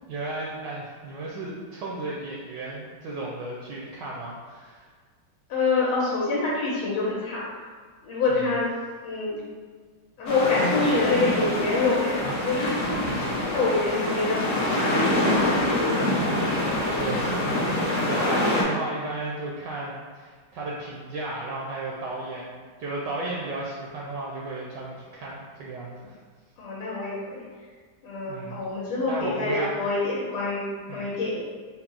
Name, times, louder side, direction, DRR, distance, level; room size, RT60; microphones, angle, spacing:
voice 1, 0.1-4.9 13.1-13.5 15.8-26.2 28.3-28.6 29.1-29.7 30.9-31.1, right 2 dB, 75° right, -4 dB, 1.0 m, -34 dB
voice 2, 5.5-7.4 8.0-8.7 9.0-9.4 10.2-15.6 26.6-27.4 28.0-31.4, left 3 dB, 90° left, -6 dB, 1.6 m, -26 dB
sound 1, 10.3-18.6, left 1 dB, 65° left, 0.7 m, -25 dB
4.3 x 2.0 x 3.7 m, 1.5 s
omnidirectional pair, 2.2 m